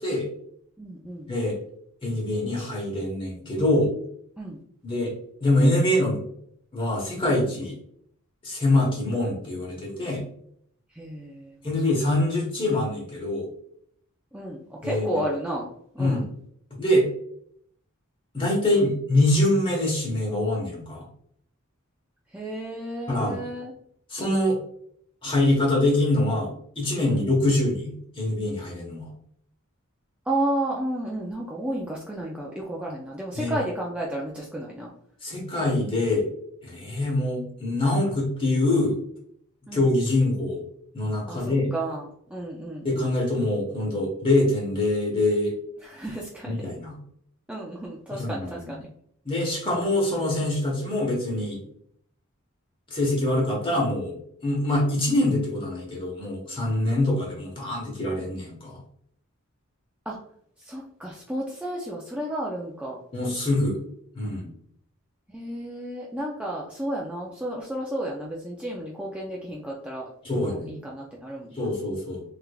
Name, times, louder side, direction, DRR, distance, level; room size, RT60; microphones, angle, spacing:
voice 1, 0.8-1.3 4.4-4.6 10.9-11.7 14.3-16.3 22.3-23.7 27.1-27.3 30.2-34.9 39.7-39.9 41.3-43.1 45.8-46.7 47.5-48.9 49.7-50.1 60.1-60.2 60.6-63.0 65.3-70.1 70.3-71.8, right 1 dB, 5° right, -4 dB, 0.4 m, -32 dB
voice 2, 2.0-3.9 4.8-5.1 5.4-6.2 6.7-7.8 8.4-10.2 11.6-13.5 14.8-15.2 16.0-16.3 16.8-17.1 18.3-21.0 23.1-23.4 24.1-24.6 25.2-29.1 33.3-33.6 35.2-36.3 36.6-39.0 39.7-40.6 40.9-41.7 42.8-45.5 46.4-46.9 48.2-48.7 49.2-51.6 52.9-54.2 54.4-58.8 63.1-63.8 64.1-64.5 70.2-70.7 71.5-72.2, left 1 dB, 25° left, -1 dB, 1.1 m, -24 dB
3.5 x 3.3 x 2.3 m, 0.68 s
head